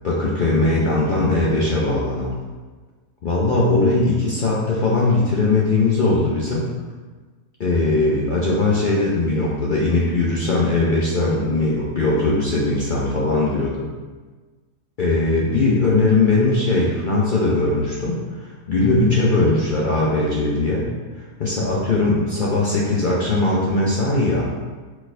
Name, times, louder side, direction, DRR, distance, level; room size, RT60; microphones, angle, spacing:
voice 1, 0.0-2.3 3.2-6.6 7.6-13.9 15.0-20.9 21.2-24.5, left 2 dB, 75° left, -5 dB, 0.4 m, -20 dB
4.7 x 4.1 x 2.5 m, 1.3 s
omnidirectional pair, 1.7 m